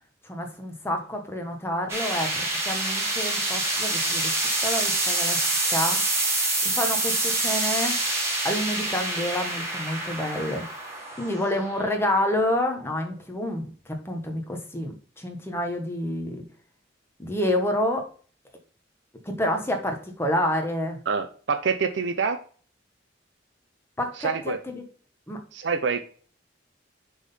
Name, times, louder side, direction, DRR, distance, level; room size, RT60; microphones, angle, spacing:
voice 1, 0.3-4.3 4.6-5.4 5.7-6.0 6.6-8.0 8.4-10.6 11.2-13.6 13.9-16.4 17.2-18.0 19.2-21.0 24.0-24.3 24.7-24.8 25.3-25.4, left 1 dB, 15° left, 3 dB, 1.2 m, -28 dB
sound 1, 1.9-13.0, right 2 dB, 15° right, 1.7 m, -27 dB
voice 2, 21.1-22.4 24.2-24.6 25.5-26.0, right 5 dB, 75° right, 8 dB, 0.6 m, -26 dB
6.2 x 3.8 x 5.5 m, 0.42 s
head